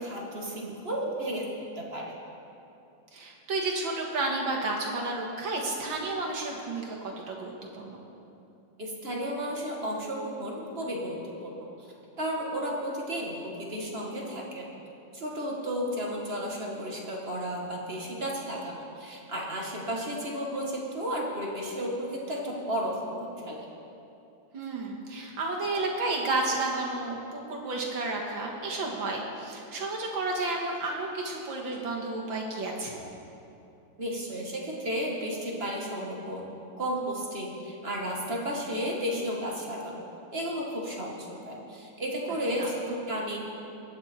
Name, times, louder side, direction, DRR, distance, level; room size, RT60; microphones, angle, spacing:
voice 1, 0.0-1.5 1.8-2.1 8.8-11.9 12.2-14.6 15.1-23.7 34.0-36.5 36.8-40.0 40.3-43.4, equal, 30° right, -2 dB, 1.7 m, -33 dB
voice 2, 3.1-8.0 24.5-33.0 42.6-42.7, right 2 dB, 80° right, -1 dB, 2.4 m, -31 dB
20.0 x 8.9 x 4.4 m, 2.8 s
omnidirectional pair, 2.1 m